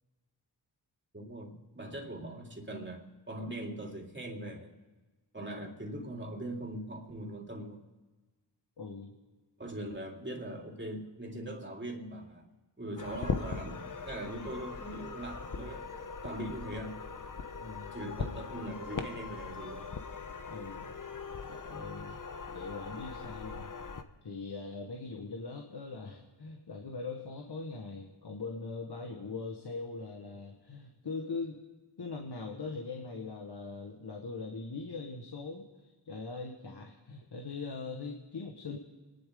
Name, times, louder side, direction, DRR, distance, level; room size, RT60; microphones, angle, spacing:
voice 1, 1.1-4.7 5.3-7.9 9.6-12.5 12.8-15.9 16.2-17.0 17.9-19.9, right 1 dB, 25° right, 1 dB, 3.3 m, -41 dB
voice 2, 8.8-9.1 17.6-17.9 20.5-20.9 21.4-22.2 22.5-23.7 24.2-31.6 32.0-38.8, left 4 dB, 60° left, 2 dB, 1.7 m, -41 dB
sound 1, 13.0-24.0, left 5 dB, 45° left, 1.1 m, -40 dB
26.0 x 11.0 x 3.9 m, 1.2 s
cardioid pair, 45°, 45 cm